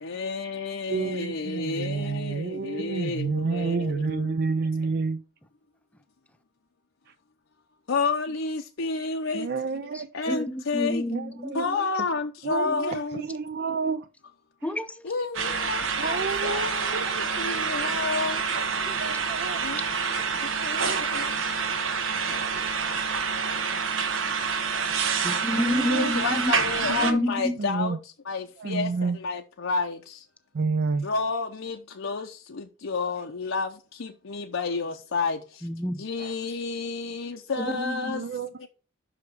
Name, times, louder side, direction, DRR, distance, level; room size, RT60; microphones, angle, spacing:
voice 1, 0.0-4.3 7.9-11.0 11.5-13.3 15.0-19.0 19.6-21.6 25.7-30.3 31.0-35.7 36.0-38.3 38.6-38.7, left 4 dB, 85° left, 0.7 m, -31 dB
voice 2, 0.9-5.2 9.3-10.1 11.1-11.6 12.4-14.1 16.0-17.7 19.0-19.6 20.7-21.0 25.6-26.1 26.9-27.3 27.6-28.0 28.6-29.2 30.5-31.1 36.2-36.3 38.1-38.7, right 4 dB, 55° right, 0.4 m, -30 dB
voice 3, 10.3-11.5 12.7-12.8 14.6-15.0 18.8-19.0 25.1-26.5 27.0-27.6 35.6-36.0 37.6-38.1, left 1 dB, 5° left, 0.6 m, -29 dB
sound 1, 15.3-27.1, right 5 dB, 90° right, 1.1 m, -27 dB
5.9 x 4.9 x 6.6 m
head